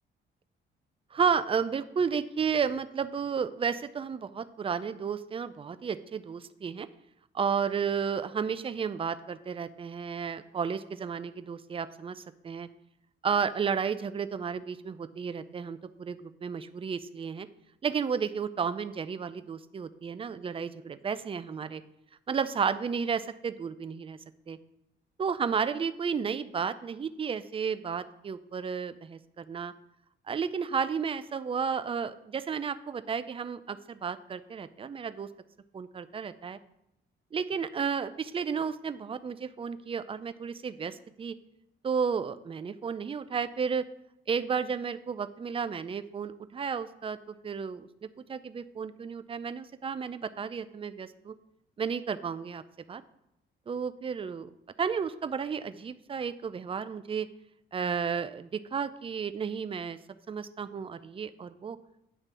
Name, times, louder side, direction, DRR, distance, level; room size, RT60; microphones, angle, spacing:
voice 1, 1.1-6.9 7.3-12.7 13.2-17.5 17.8-21.8 22.3-24.2 24.5-24.6 25.2-29.7 30.3-35.3 35.7-36.6 37.3-41.3 41.8-43.9 44.3-47.9 48.3-51.3 51.8-52.6 52.9-53.0 53.7-54.5 54.8-57.3 57.7-60.0 60.3-61.8, right 6 dB, 30° right, 12 dB, 0.4 m, -32 dB
9.1 x 3.2 x 6.1 m, 0.82 s
cardioid pair, 90°, 20 cm